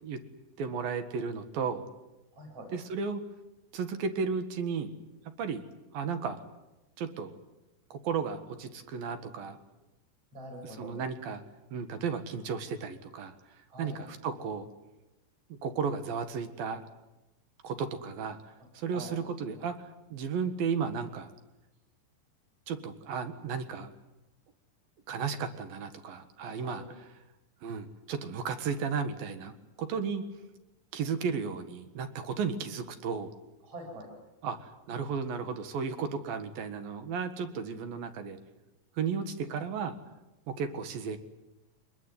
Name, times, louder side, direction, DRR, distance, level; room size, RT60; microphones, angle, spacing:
voice 1, 0.6-1.8 2.7-3.2 3.7-4.9 5.4-5.6 5.9-6.4 7.0-7.3 7.9-9.6 10.6-11.4 11.7-13.3 13.8-14.7 15.5-16.8 17.6-19.8 20.1-21.3 22.7-23.9 25.1-27.1 27.6-30.2 30.9-33.3 34.4-38.4 39.0-39.9 40.5-41.2, right 6 dB, 60° right, 9 dB, 3.0 m, -34 dB
voice 2, 2.3-2.7 10.3-11.0 13.7-14.0 18.9-19.1 26.5-26.9 33.6-34.1, equal, 30° right, 3 dB, 7.7 m, -44 dB
25.5 x 21.0 x 9.7 m, 1.0 s
omnidirectional pair, 5.3 m